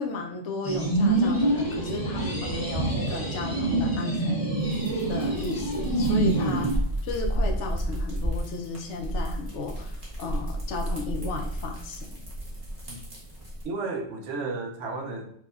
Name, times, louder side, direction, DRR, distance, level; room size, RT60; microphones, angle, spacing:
voice 1, 0.0-4.6 5.1-6.7 7.0-12.1, left 3 dB, 80° left, 3 dB, 0.9 m, -34 dB
sound 1, 0.6-6.8, right 2 dB, 25° left, 0.6 m, -26 dB
sound 2, 4.6-13.6, right 1 dB, 30° right, 1.2 m, -32 dB
voice 2, 13.6-15.4, right 3 dB, 85° right, 3 dB, 1.0 m, -33 dB
4.7 x 2.3 x 2.4 m, 0.64 s
omnidirectional pair, 1.2 m